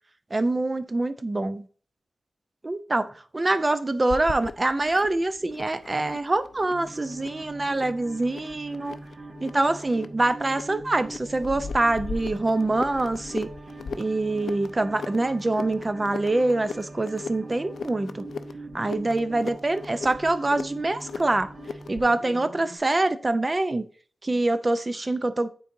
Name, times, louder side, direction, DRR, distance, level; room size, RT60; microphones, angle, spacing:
voice 1, 0.3-1.7 2.6-9.0 9.4-13.5 13.9-18.2 18.7-21.5 21.9-23.9 24.2-25.5, right 2 dB, 30° right, 0.5 m, -25 dB
sound 1, 4.1-22.1, left 5 dB, 90° left, 0.4 m, -39 dB
sound 2, 6.7-22.8, right 2 dB, 50° right, 1.0 m, -43 dB
9.1 x 3.9 x 2.6 m
wide cardioid pair, 85°, 0 cm